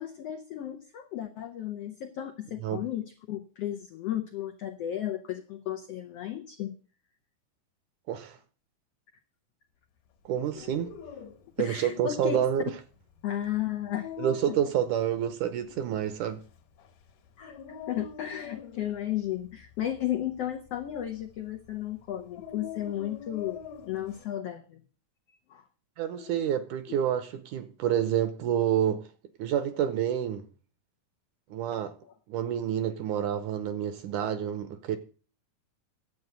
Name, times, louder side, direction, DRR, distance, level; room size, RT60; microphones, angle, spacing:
voice 1, 0.0-6.7 10.6-10.8 11.6-12.4 13.2-14.1 14.5-14.6 17.4-17.5 17.9-24.8 25.5-25.6 26.1-26.3 31.7-31.8, left 12 dB, 85° left, 1.3 m, -34 dB
voice 2, 8.1-8.4 10.3-11.0 11.6-12.6 14.2-16.4 26.0-29.1 29.4-30.5 31.5-32.0 32.3-35.0, right 10 dB, 75° right, 2.0 m, -28 dB
Dog, 10.5-24.3, left 7 dB, 65° left, 2.7 m, -46 dB
11.0 x 8.1 x 6.7 m
omnidirectional pair, 4.1 m